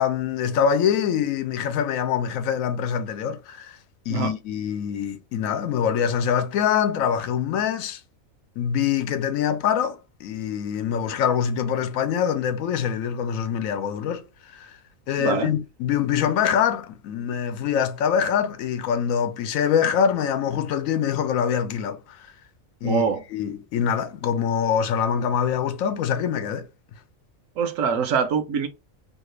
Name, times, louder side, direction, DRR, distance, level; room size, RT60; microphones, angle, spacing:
voice 1, 0.0-3.8 4.1-8.0 8.6-14.8 15.1-22.3 22.8-26.7, left 8 dB, 80° left, 1.0 m, -24 dB
voice 2, 15.2-15.5 22.8-23.2 27.6-28.7, right 6 dB, 75° right, 1.0 m, -24 dB
2.9 x 2.4 x 3.1 m
omnidirectional pair, 1.4 m